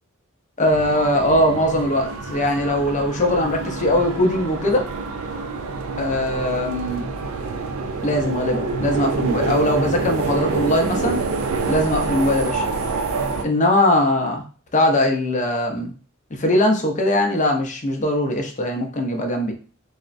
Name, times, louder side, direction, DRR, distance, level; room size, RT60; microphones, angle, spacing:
voice 1, 0.6-4.9 6.0-7.1 8.0-11.2 11.7-12.6 13.4-14.4 14.7-15.9 16.3-19.5, left 1 dB, 35° left, 3 dB, 0.5 m, -20 dB
sound 1, 0.6-13.4, right 4 dB, 70° right, 0.4 m, -27 dB
3.4 x 2.1 x 2.5 m, 0.39 s
head